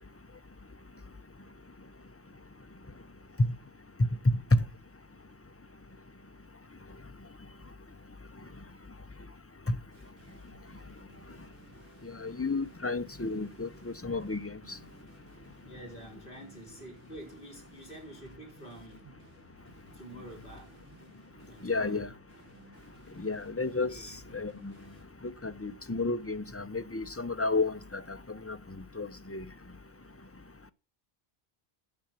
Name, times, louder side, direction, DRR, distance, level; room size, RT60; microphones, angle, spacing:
sound 1, 9.9-25.0, right 2 dB, 60° right, 3.6 m, -58 dB
voice 1, 12.2-14.6 21.6-22.1 23.2-23.9 24.3-24.7 25.4-28.0 28.3-28.6 29.0-29.4, left 3 dB, 20° left, 0.5 m, -31 dB
voice 2, 15.6-19.1 19.9-20.8 21.5-22.4 23.8-24.2, right 1 dB, 55° left, 4.3 m, -48 dB
10.5 x 7.8 x 6.0 m
omnidirectional pair, 1.0 m